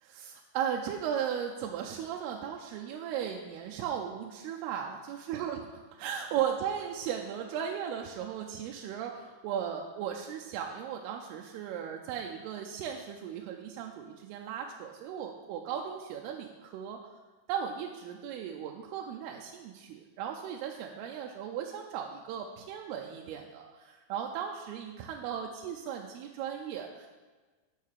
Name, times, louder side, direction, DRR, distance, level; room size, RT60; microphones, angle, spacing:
voice 1, 0.1-5.6 6.0-17.0 17.5-27.1, right 8 dB, 80° right, 1 dB, 2.5 m, -36 dB
7.4 x 6.5 x 6.4 m, 1.3 s
omnidirectional pair, 4.7 m